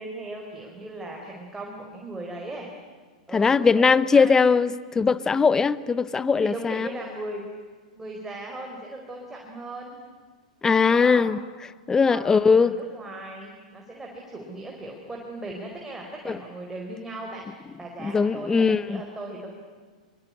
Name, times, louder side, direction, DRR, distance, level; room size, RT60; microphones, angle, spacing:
voice 1, 0.0-2.7 3.3-4.3 6.4-7.4 7.9-10.0 10.9-11.3 12.1-17.5 17.8-19.5, right 2 dB, 10° right, 4.8 m, -38 dB
voice 2, 3.3-6.9 10.6-11.4 11.9-12.7 16.3-16.4 18.0-19.0, left 5 dB, 15° left, 0.9 m, -20 dB
24.5 x 24.5 x 9.9 m
hypercardioid pair, 110°, 4 cm